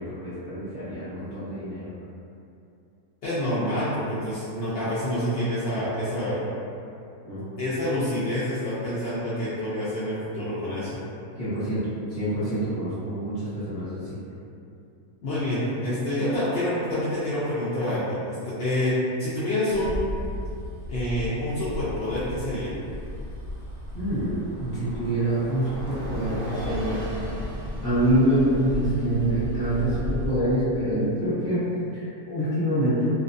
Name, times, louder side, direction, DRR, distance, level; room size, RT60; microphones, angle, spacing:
voice 1, 0.0-1.9 7.2-7.4 11.4-11.8 12.1-14.0 23.9-24.3 24.6-27.0 27.8-33.1, right 1 dB, 40° left, -14 dB, 1.0 m, -26 dB
voice 2, 3.2-6.4 7.6-11.0 15.2-20.0 20.9-22.7, left 1 dB, 65° left, -11 dB, 0.5 m, -27 dB
Bus, 19.7-30.4, equal, 60° right, 0.8 m, -34 dB
2.5 x 2.2 x 2.5 m, 2.6 s
omnidirectional pair, 1.5 m